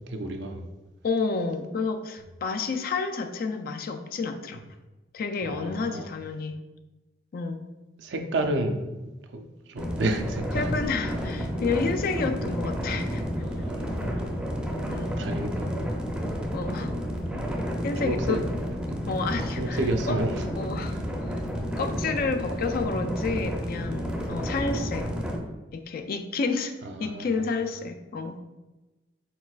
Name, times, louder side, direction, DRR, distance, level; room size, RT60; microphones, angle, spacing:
voice 1, 0.1-0.6 5.4-6.1 8.0-10.8 13.4-14.2 15.0-15.8 18.0-18.4 18.9-19.1 19.6-20.5 20.9-21.1 24.4-24.5 24.8-25.1 26.8-27.5, right 2 dB, 85° right, 5 dB, 0.5 m, -31 dB
voice 2, 1.0-4.6 5.1-6.6 7.3-7.6 10.5-13.2 14.9-15.1 16.5-16.9 17.8-18.4 19.1-19.8 20.1-20.2 20.6-21.0 21.8-25.1 25.7-26.7 27.0-28.4, left 4 dB, 55° left, 7 dB, 0.4 m, -30 dB
sound 1, 9.8-25.4, equal, 5° right, 0.5 m, -31 dB
4.4 x 4.0 x 2.4 m, 1.1 s
head